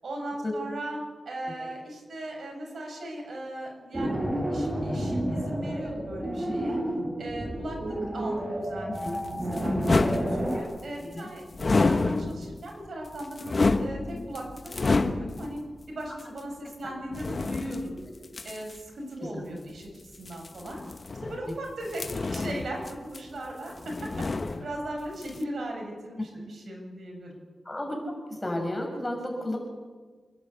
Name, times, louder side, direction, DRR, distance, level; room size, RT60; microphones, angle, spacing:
voice 1, 0.0-6.8 7.2-15.6 15.9-18.0 18.4-19.9 20.2-20.8 21.2-24.3 24.6-27.4, right 1 dB, 70° right, 0 dB, 6.7 m, -38 dB
sound 1, 3.9-10.6, right 1 dB, 20° right, 5.2 m, -30 dB
voice 2, 4.9-5.3 8.9-9.2 11.0-11.3 16.8-16.9 19.2-19.4 21.4-21.5 26.2-26.3 27.6-28.0 28.3-29.6, left 1 dB, 15° left, 1 dB, 6.6 m, -34 dB
sound 2, 9.0-10.9 11.5-12.6 13.1-15.6 16.2-16.3 17.1-18.8 20.1-21.6 21.9-23.5 23.8-24.9 25.2-25.4, left 3 dB, 45° left, 1.2 m, -29 dB
27.5 x 12.0 x 8.3 m, 1.4 s
cardioid pair, 70°, 0 cm